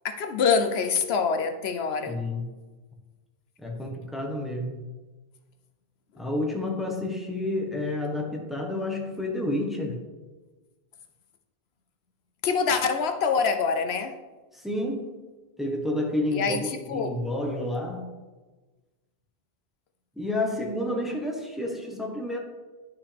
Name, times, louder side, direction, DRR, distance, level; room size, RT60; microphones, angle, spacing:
voice 1, 0.0-2.2 12.4-14.1 16.3-17.2, left 5 dB, 75° left, 7 dB, 0.9 m, -25 dB
voice 2, 2.1-2.4 3.6-4.8 6.2-10.0 14.5-15.1 15.6-18.1 20.2-22.4, left 1 dB, ahead, 0 dB, 1.2 m, -30 dB
11.0 x 5.7 x 3.5 m, 1.2 s
omnidirectional pair, 1.1 m